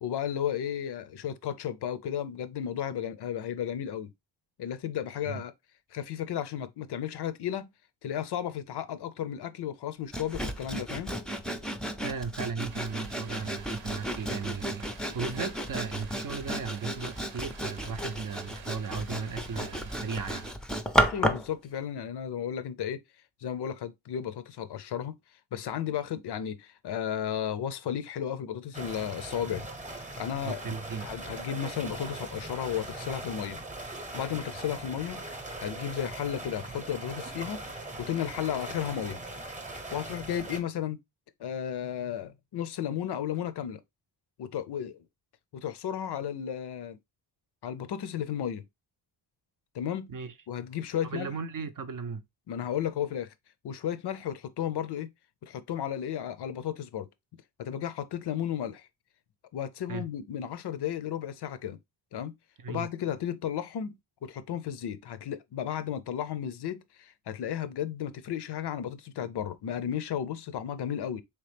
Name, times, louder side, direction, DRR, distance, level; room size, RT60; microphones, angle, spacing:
voice 1, 0.0-4.1 4.6-5.5 5.9-7.7 8.0-11.1 21.1-23.0 23.4-25.1 25.5-35.2 35.6-37.6 38.0-39.2 39.9-41.0 41.4-43.8 44.4-45.0 45.5-47.0 47.6-48.6 49.7-50.1 50.5-51.3 52.5-53.3 53.6-55.1 55.4-57.1 57.6-58.9 59.5-61.8 62.1-62.3 62.7-64.0 64.2-71.2, left 9 dB, 60° left, 0.5 m, -34 dB
Sawing, 10.1-21.5, equal, ahead, 0.4 m, -33 dB
voice 2, 12.0-20.5 30.4-31.1 50.1-50.3 51.0-52.2 59.9-60.1 62.6-62.9, right 5 dB, 45° right, 0.6 m, -36 dB
sound 1, 12.7-20.5, right 6 dB, 75° right, 0.8 m, -49 dB
sound 2, 28.7-40.6, right 2 dB, 15° right, 0.8 m, -40 dB
3.5 x 2.9 x 3.2 m
cardioid pair, 80°, 45 cm